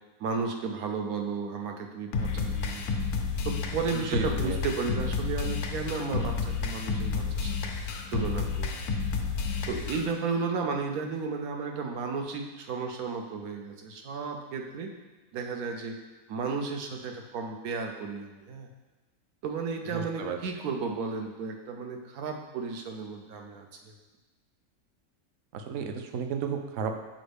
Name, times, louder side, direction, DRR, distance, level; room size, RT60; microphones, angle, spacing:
voice 1, 0.2-2.8 3.4-7.6 8.1-8.8 9.7-14.9 15.3-16.0 16.3-18.7 19.4-23.9, right 4 dB, 85° right, 3 dB, 1.2 m, -33 dB
sound 1, 2.1-10.1, left 5 dB, 90° left, 1.1 m, -31 dB
voice 2, 4.1-4.6 19.9-20.4 25.5-26.9, right 6 dB, 65° right, 5 dB, 0.9 m, -33 dB
6.4 x 4.3 x 3.4 m, 1.2 s
omnidirectional pair, 1.5 m